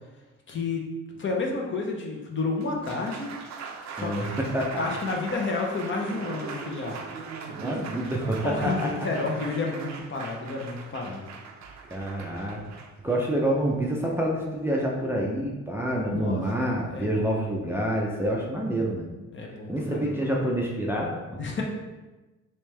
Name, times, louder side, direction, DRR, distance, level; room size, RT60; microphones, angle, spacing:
voice 1, 0.5-0.8 1.2-3.3 3.9-4.5 4.8-7.0 8.4-11.2 16.1-17.4 19.3-20.1 21.4-21.6, left 3 dB, 40° left, 0 dB, 0.7 m, -31 dB
Applause, 2.5-14.7, right 5 dB, 65° right, 0.5 m, -40 dB
voice 2, 4.5-4.8 7.5-8.9 11.9-12.6 13.0-19.1 19.7-21.4, right 1 dB, 10° right, -3 dB, 0.5 m, -27 dB
3.2 x 3.1 x 3.3 m, 1.1 s
cardioid pair, 90°, 30 cm